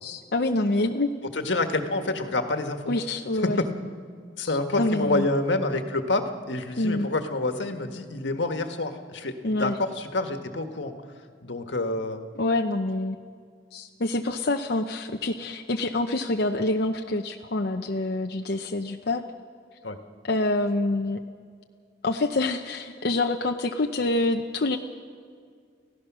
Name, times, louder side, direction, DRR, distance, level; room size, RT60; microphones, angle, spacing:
voice 1, 0.0-1.1 2.9-3.6 4.4-5.3 6.8-7.1 9.4-9.8 12.4-13.2 13.7-19.2 20.2-21.2 22.0-24.8, left 2 dB, 60° left, 3 dB, 0.8 m, -26 dB
voice 2, 1.3-2.9 3.4-3.7 4.4-10.9 11.4-12.2 19.8-20.0, left 2 dB, 85° left, 6 dB, 1.6 m, -27 dB
29.5 x 16.0 x 6.2 m, 2.1 s
head